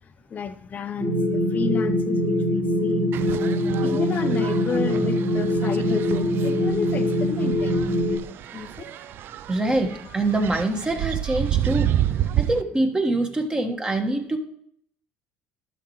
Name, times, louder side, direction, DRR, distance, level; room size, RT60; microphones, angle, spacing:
voice 1, 0.3-3.1 3.8-7.8 8.5-8.8 10.0-10.4, left 7 dB, 40° left, 9 dB, 0.6 m, -31 dB
sound 1, 1.0-8.2, equal, 85° right, 2.1 m, -23 dB
sound 2, 3.1-12.6, right 12 dB, 60° right, 0.3 m, -30 dB
voice 2, 9.5-14.4, right 2 dB, 20° right, 4 dB, 1.4 m, -25 dB
12.5 x 6.1 x 3.1 m, 0.69 s
supercardioid pair, 80°, 4 cm